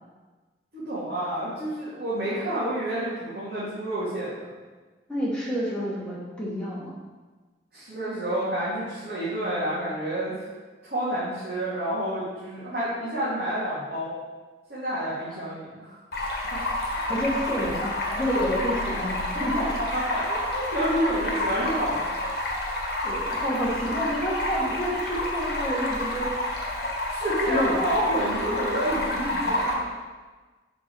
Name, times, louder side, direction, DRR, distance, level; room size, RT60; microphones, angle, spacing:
voice 1, 0.7-4.5 7.7-10.3 10.8-14.2 14.7-16.0 16.5-16.6 16.9-17.0 19.9-22.1 27.1-29.9, right 1 dB, 65° right, -11 dB, 2.6 m, -29 dB
voice 2, 5.1-7.0 15.3-15.4 17.1-19.7 23.0-26.4 27.5-28.0 28.5-28.7, equal, 5° left, -8 dB, 2.3 m, -29 dB
Stream, 16.1-29.7, left 1 dB, 60° left, 1.6 m, -29 dB
7.2 x 6.0 x 4.8 m, 1.3 s
head